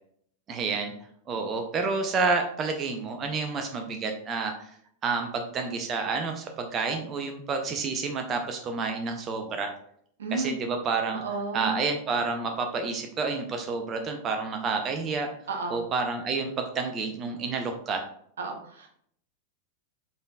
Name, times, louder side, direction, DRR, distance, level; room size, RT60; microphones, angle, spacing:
voice 1, 0.5-0.9 1.3-4.7 5.0-9.7 10.3-11.2 11.5-15.3 15.7-18.0, right 4 dB, 30° right, 4 dB, 0.6 m, -29 dB
voice 2, 10.2-10.5 11.1-11.8 15.5-15.8 18.4-18.9, right 3 dB, 65° right, 2 dB, 0.9 m, -32 dB
5.2 x 3.9 x 2.3 m, 0.66 s
figure-of-eight pair, 90°, 0 cm